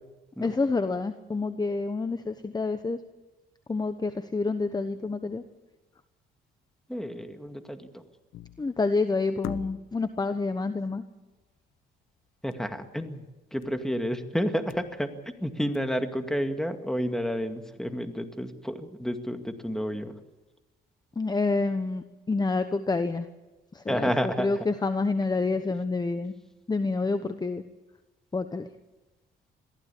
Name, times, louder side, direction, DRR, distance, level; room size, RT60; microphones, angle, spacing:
voice 1, 0.4-3.0 3.7-5.4 8.6-11.0 21.2-23.3 23.7-24.1 24.4-26.3 26.7-27.6 28.3-28.7, left 3 dB, 20° left, 10 dB, 1.0 m, -28 dB
voice 2, 6.9-8.1 12.4-13.2 13.5-20.1 23.9-24.5, equal, ahead, 6 dB, 2.1 m, -30 dB
sound 1, 8.3-8.8 9.4-10.1 12.5-12.8 13.0-13.1 13.6-13.9 14.4-15.3 15.7-15.8, left 14 dB, 90° left, 0.9 m, -41 dB
22.0 x 15.0 x 8.6 m, 1.1 s
cardioid pair, 90°, 20 cm